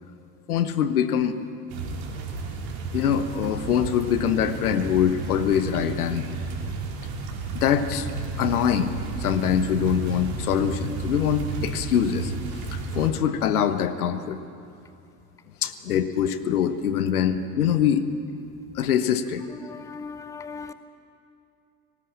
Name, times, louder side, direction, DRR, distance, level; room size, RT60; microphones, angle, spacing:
voice 1, 0.5-1.4 2.9-6.3 7.5-8.1 8.4-8.9 9.2-12.3 12.7-14.4 15.6-18.1 18.7-19.4, left 9 dB, 70° left, 1.2 m, -24 dB
sound 1, 1.7-13.1, right 4 dB, 50° right, 3.4 m, -32 dB
voice 2, 19.6-20.7, left 5 dB, 5° left, 0.7 m, -38 dB
19.0 x 18.5 x 8.6 m
figure-of-eight pair, 75°, 46 cm